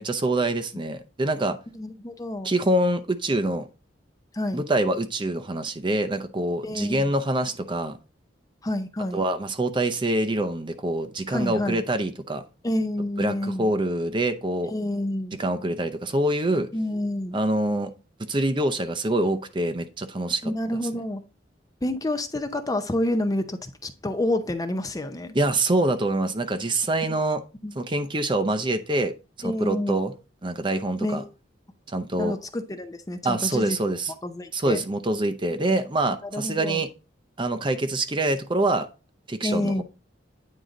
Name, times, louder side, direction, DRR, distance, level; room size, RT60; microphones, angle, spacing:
voice 1, 0.0-1.6 2.4-3.7 4.5-8.0 9.1-12.4 13.2-14.7 15.4-16.7 17.3-17.9 18.3-20.5 25.3-27.4 27.8-29.1 29.4-30.1 30.4-31.2 31.9-32.4 33.2-34.1 34.5-36.9 37.4-38.9 39.3-39.8, right 1 dB, 25° right, 0.6 m, -25 dB
voice 2, 1.7-2.5 4.3-4.6 6.6-7.1 8.6-9.2 11.3-11.8 12.6-13.7 14.7-15.4 16.7-17.4 20.4-21.2 21.8-25.4 27.6-27.7 29.4-30.0 31.0-31.3 32.2-33.8 34.2-34.8 35.5-35.6 36.2-36.8 39.4-39.8, left 1 dB, 20° left, 0.6 m, -28 dB
9.3 x 3.8 x 3.9 m
head